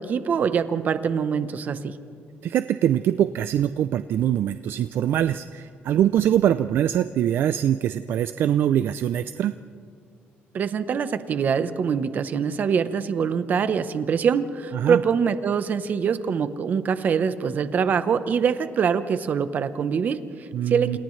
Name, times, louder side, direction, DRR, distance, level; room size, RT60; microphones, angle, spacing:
voice 1, 0.0-2.0 10.5-21.0, right 6 dB, 40° right, 11 dB, 0.9 m, -24 dB
voice 2, 2.4-9.5 14.7-15.0 20.5-21.0, right 10 dB, 60° right, 12 dB, 0.4 m, -23 dB
28.5 x 28.0 x 3.2 m, 2.3 s
cardioid pair, 155°, 4 cm